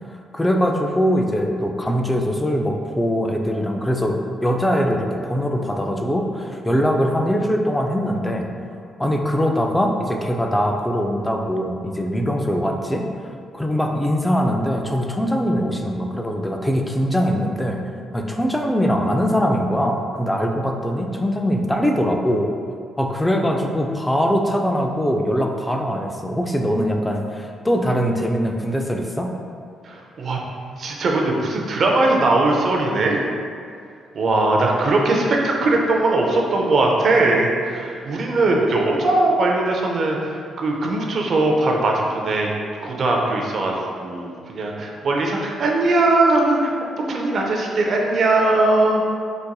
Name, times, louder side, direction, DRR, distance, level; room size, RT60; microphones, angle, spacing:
voice 1, 0.1-8.5 9.0-17.8 18.1-22.5 23.0-29.3, equal, 10° left, 2 dB, 0.3 m, -22 dB
voice 2, 29.8-30.4 30.8-33.2 34.1-42.5 42.8-49.0, right 2 dB, 55° right, 0 dB, 0.4 m, -20 dB
4.0 x 2.5 x 2.2 m, 2.3 s
cardioid pair, 90°, 0 cm